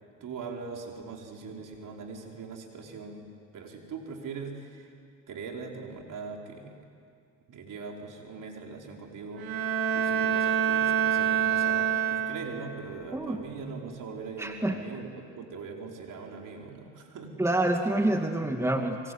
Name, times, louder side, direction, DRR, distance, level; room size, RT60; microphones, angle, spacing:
voice 1, 0.2-3.2 3.5-4.9 5.3-6.9 7.5-9.5 9.9-17.4, right 4 dB, 55° right, 1 dB, 5.1 m, -41 dB
Bowed string instrument, 9.4-12.8, right 8 dB, 70° right, 2.8 m, -26 dB
voice 2, 13.1-13.4 14.4-14.8 17.4-19.1, right 1 dB, 5° right, 4 dB, 2.2 m, -27 dB
27.0 x 23.0 x 9.7 m, 2.3 s
supercardioid pair, 75°, 37 cm